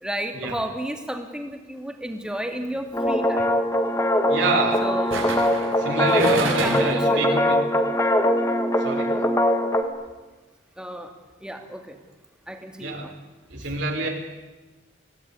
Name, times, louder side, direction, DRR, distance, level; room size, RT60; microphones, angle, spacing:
voice 1, 0.0-3.5 4.8-5.2 6.4-7.5 10.8-11.1 11.4-12.0 12.5-13.1, equal, 5° right, 5 dB, 2.5 m, -32 dB
sound 1, 2.5-2.8 5.1-7.1 7.4-7.5, right 3 dB, 85° right, 5.9 m, -30 dB
sound 2, 2.9-9.8, left 1 dB, 15° left, 1.9 m, -22 dB
voice 2, 4.3-4.8 5.8-7.6 8.8-9.1 12.8-13.1 13.5-14.1, right 3 dB, 60° right, 0 dB, 4.4 m, -26 dB
25.0 x 18.0 x 9.8 m, 1.2 s
head